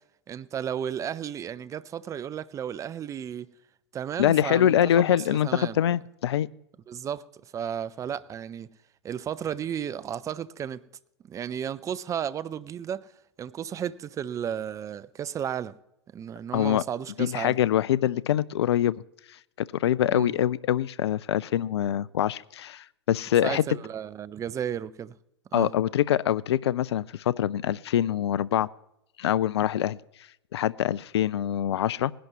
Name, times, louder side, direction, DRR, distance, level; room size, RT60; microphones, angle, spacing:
voice 1, 0.3-3.5 3.9-5.8 6.9-7.2 7.5-8.7 9.0-10.8 11.3-13.1 13.4-15.7 16.1-17.6 20.1-20.3 23.4-25.1 25.5-25.7, right 9 dB, 20° right, 0.6 m, -33 dB
voice 2, 4.2-6.5 16.5-16.8 17.2-19.0 19.7-23.6 25.5-28.7 29.2-30.0 30.5-32.1, left 11 dB, 70° left, 0.4 m, -24 dB
19.5 x 11.5 x 3.0 m
hypercardioid pair, 100°, 14 cm